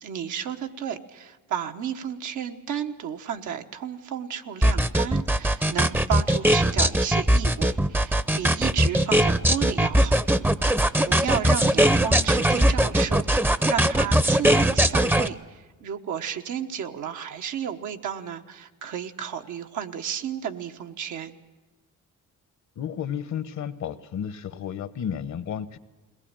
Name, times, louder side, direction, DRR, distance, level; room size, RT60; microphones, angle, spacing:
voice 1, 0.0-10.3 11.0-21.3, right 8 dB, 80° right, 1.2 m, -32 dB
sound 1, 4.6-15.3, right 1 dB, 5° right, 0.6 m, -20 dB
voice 2, 22.8-25.8, left 8 dB, 65° left, 1.1 m, -32 dB
21.5 x 18.5 x 8.9 m
cardioid pair, 90°, 30 cm